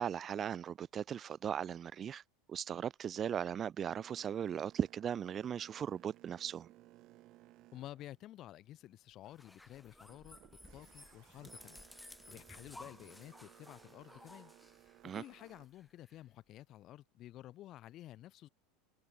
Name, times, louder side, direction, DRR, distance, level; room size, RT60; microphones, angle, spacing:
voice 1, 0.0-2.2 2.5-6.7 15.0-15.2, right 8 dB, 25° right, 0.6 m, -38 dB
Boat Water vehicle, 3.9-8.9 9.4-15.7, right 18 dB, 45° right, 2.6 m, -62 dB
voice 2, 7.7-10.4 10.7-11.9 12.3-14.5 15.1-18.5, left 14 dB, 40° left, 1.8 m, -52 dB
sound 1, 9.2-16.2, left 2 dB, 5° left, 5.0 m, -57 dB
supercardioid pair, 140°, 0 cm